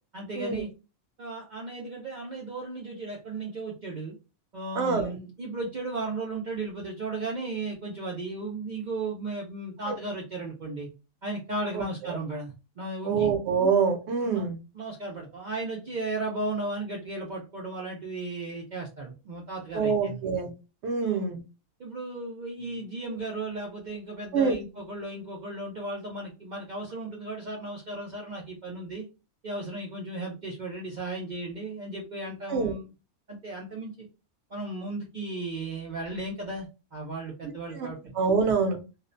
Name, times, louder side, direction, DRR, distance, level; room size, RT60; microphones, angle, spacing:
voice 1, 0.1-0.7 1.2-4.1 4.5-10.9 11.2-13.3 14.2-14.5 14.7-20.2 21.0-21.4 21.8-29.0 29.4-32.9 33.3-34.1 34.5-38.1, right 2 dB, 80° right, 0.4 m, -35 dB
voice 2, 4.8-5.1 9.9-10.0 11.7-12.1 13.0-14.6 19.7-20.5 20.8-21.4 24.3-24.6 32.5-32.7 37.8-37.9 38.2-38.8, right 5 dB, 65° right, 0.8 m, -25 dB
2.5 x 2.0 x 2.5 m
omnidirectional pair, 1.4 m